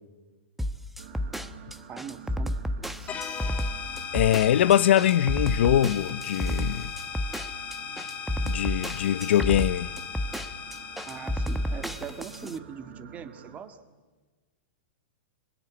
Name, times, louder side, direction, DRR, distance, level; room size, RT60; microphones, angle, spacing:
sound 1, 0.6-12.6, equal, 5° right, 1.0 m, -31 dB
sound 2, 1.0-13.6, right 8 dB, 60° right, 5.2 m, -49 dB
voice 1, 1.9-3.2 11.1-13.8, right 7 dB, 25° right, 2.0 m, -41 dB
sound 3, 3.1-12.5, left 7 dB, 25° left, 1.9 m, -38 dB
voice 2, 4.1-6.9 8.4-9.9, left 11 dB, 70° left, 0.7 m, -22 dB
26.0 x 23.0 x 8.9 m
hypercardioid pair, 135°, 6 cm